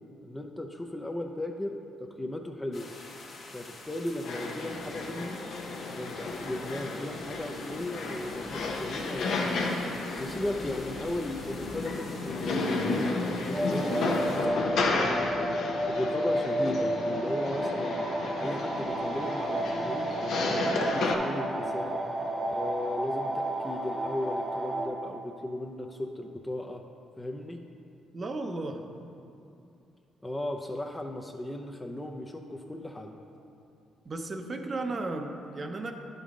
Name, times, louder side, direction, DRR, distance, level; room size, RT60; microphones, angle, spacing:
voice 1, 0.2-2.9 3.5-5.4 5.9-9.7 10.2-14.0 14.9-18.0 18.4-22.0 22.5-26.8 27.2-27.6 30.2-33.1, left 1 dB, 10° left, 3 dB, 0.5 m, -36 dB
sound 1, 2.7-14.5, left 3 dB, 55° left, 1.1 m, -47 dB
sound 2, 4.2-21.1, left 3 dB, 75° left, 0.8 m, -33 dB
sound 3, 13.5-24.9, right 1 dB, 15° right, 1.0 m, -31 dB
voice 2, 28.1-28.8 34.0-35.9, right 2 dB, 35° right, 5 dB, 0.7 m, -34 dB
10.0 x 5.3 x 3.7 m, 2.7 s
cardioid pair, 90°, 0 cm